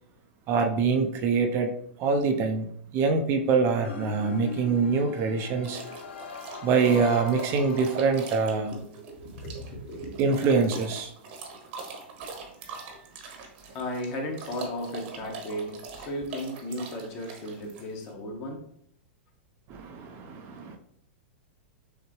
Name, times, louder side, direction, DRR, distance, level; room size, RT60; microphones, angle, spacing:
voice 1, 0.5-1.7 2.0-2.7 2.9-5.8 6.6-8.8 10.2-11.1 12.8-12.9 19.7-20.8, right 4 dB, 40° right, 5 dB, 0.6 m, -24 dB
sound 1, 3.8-8.5, left 6 dB, 75° left, 0.6 m, -41 dB
sound 2, 5.6-18.1, right 4 dB, 55° right, 1.1 m, -42 dB
voice 2, 8.6-10.3 13.7-18.6, left 1 dB, 40° left, 1 dB, 1.2 m, -35 dB
6.4 x 2.2 x 3.1 m, 0.68 s
hypercardioid pair, 125°, 6 cm